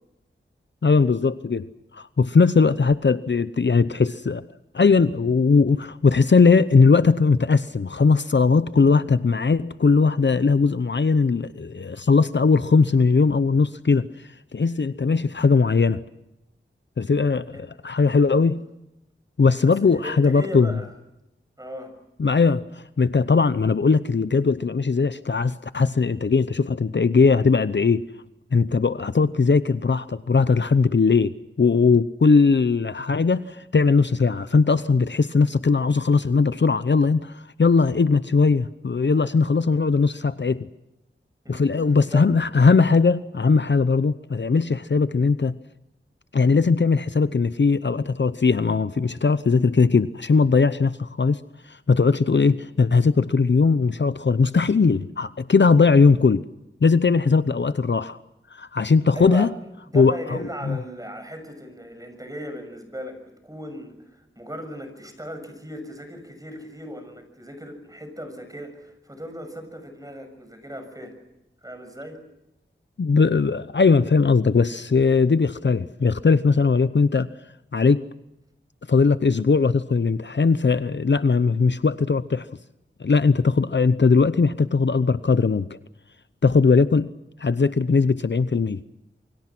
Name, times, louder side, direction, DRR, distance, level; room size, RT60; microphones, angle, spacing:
voice 1, 0.8-1.7 1.9-4.4 4.7-14.1 14.5-16.0 17.0-18.6 19.4-20.8 22.2-28.0 28.5-40.6 41.5-45.5 46.3-51.4 51.7-56.4 56.8-58.2 58.5-59.5 59.9-60.8 73.0-77.3 77.7-78.0 78.9-82.5 83.0-85.7 86.4-87.1 87.4-88.8, left 4 dB, 60° left, 13 dB, 0.8 m, -19 dB
voice 2, 18.2-18.5 19.6-20.9 21.6-21.9 41.4-42.3 59.1-59.5 59.9-64.0 64.3-71.2 71.6-72.2, equal, 15° right, 7 dB, 6.9 m, -37 dB
28.0 x 24.0 x 6.2 m, 0.90 s
wide cardioid pair, 70°, 21 cm